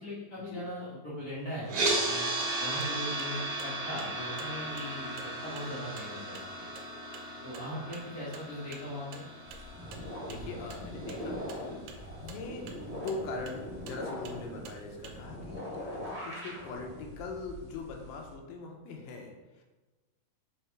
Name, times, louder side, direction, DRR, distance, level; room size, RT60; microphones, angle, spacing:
voice 1, 0.0-2.3 2.6-5.1 5.4-6.7 7.4-9.2, equal, 65° left, -8 dB, 0.9 m, -39 dB
sound 1, 1.7-11.8, right 2 dB, 60° right, 2.1 m, -36 dB
sound 2, 1.7-15.2, right 6 dB, 90° right, 2.2 m, -51 dB
sound 3, 9.5-18.3, equal, 25° right, 0.9 m, -42 dB
voice 2, 10.3-19.6, left 3 dB, 80° left, 1 dB, 2.3 m, -42 dB
5.9 x 3.7 x 4.6 m, 1.2 s
omnidirectional pair, 3.8 m